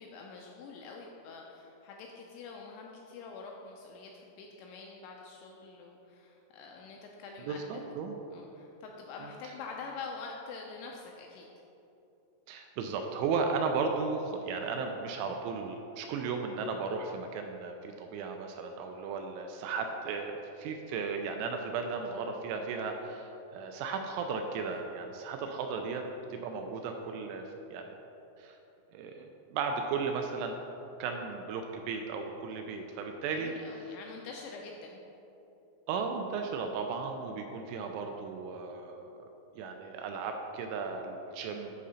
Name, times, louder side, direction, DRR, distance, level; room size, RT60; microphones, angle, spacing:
voice 1, 0.0-7.8 8.3-11.5 33.3-35.1, left 4 dB, 85° left, 0 dB, 2.7 m, -46 dB
voice 2, 7.5-8.2 12.5-27.9 28.4-28.6 28.9-30.6 31.0-33.5 35.9-39.2 39.6-41.7, right 5 dB, 85° right, 4 dB, 2.8 m, -35 dB
9.3 x 3.7 x 5.6 m, 2.9 s
omnidirectional pair, 5.7 m